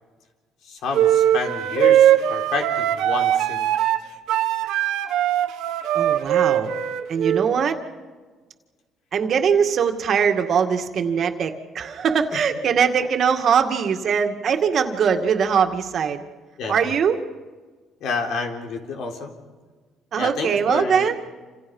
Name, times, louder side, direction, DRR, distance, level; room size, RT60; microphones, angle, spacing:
voice 1, 0.6-3.7 12.3-12.4 16.6-16.9 18.0-19.3 20.1-21.1, left 4 dB, 65° left, 3 dB, 4.1 m, -29 dB
sound 1, 0.9-7.4, right 11 dB, 80° right, 1.4 m, -20 dB
voice 2, 5.9-6.7 7.1-7.8 9.1-16.3 16.7-17.2 20.1-21.2, right 7 dB, 50° right, 5 dB, 2.1 m, -21 dB
28.0 x 27.5 x 5.5 m, 1.4 s
cardioid pair, 125°, 0 cm